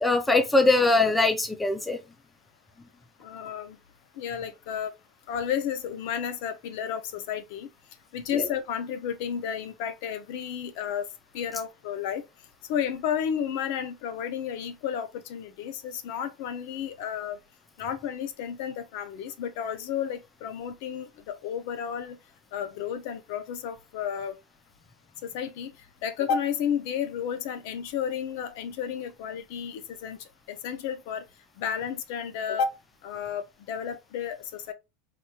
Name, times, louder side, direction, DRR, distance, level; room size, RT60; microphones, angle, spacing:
voice 1, 0.0-2.0 8.3-8.5, left 2 dB, 5° left, 0.4 m, -22 dB
voice 2, 3.2-3.8 4.2-4.9 5.3-7.7 8.1-11.1 11.3-12.2 12.7-17.4 17.8-22.2 22.5-24.4 25.2-25.7 26.0-31.2 31.6-32.7 33.0-34.7, left 8 dB, 55° left, 0.6 m, -32 dB
4.2 x 3.0 x 2.3 m
supercardioid pair, 180°, 0 cm